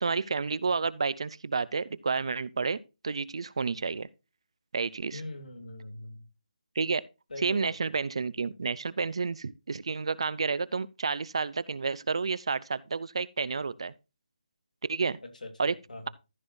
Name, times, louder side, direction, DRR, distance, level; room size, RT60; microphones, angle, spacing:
voice 1, 0.0-4.1 4.7-5.2 6.8-7.0 7.4-13.9 14.9-15.2 15.6-15.7, right 4 dB, 45° right, 0.5 m, -30 dB
voice 2, 5.1-6.2 7.3-7.8 15.2-16.1, left 2 dB, 80° left, 2.8 m, -42 dB
14.5 x 6.2 x 2.6 m
hypercardioid pair, 175°, 4 cm